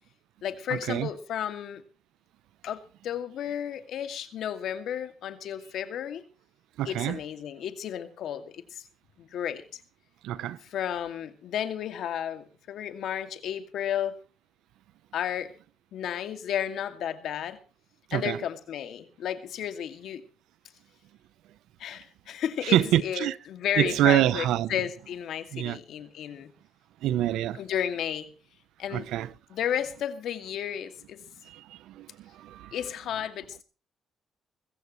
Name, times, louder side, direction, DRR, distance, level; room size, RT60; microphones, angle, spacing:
voice 1, 0.4-1.8 2.6-6.2 6.8-8.9 9.2-9.8 10.6-14.2 15.1-15.5 15.9-17.6 18.1-20.2 21.8-26.5 27.5-28.3 28.8-29.1 29.5-31.2 32.7-33.6, left 9 dB, 75° left, 2.3 m, -33 dB
voice 2, 6.8-7.2 10.2-10.6 18.1-18.4 22.6-23.4 23.8-24.7 25.5-25.8 27.0-27.6 28.9-29.3 31.5-32.7, right 13 dB, 90° right, 0.8 m, -26 dB
21.5 x 15.5 x 3.2 m
cardioid pair, 90°, 0 cm